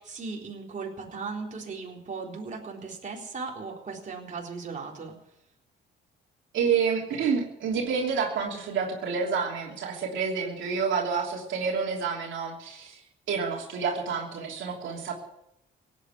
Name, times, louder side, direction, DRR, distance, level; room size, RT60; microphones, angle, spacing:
voice 1, 0.0-5.1, right 4 dB, 40° right, -1 dB, 3.9 m, -37 dB
voice 2, 6.5-13.0 13.3-15.1, right 6 dB, 75° right, -1 dB, 3.2 m, -28 dB
17.5 x 9.3 x 8.4 m, 0.83 s
cardioid pair, 90°, 20 cm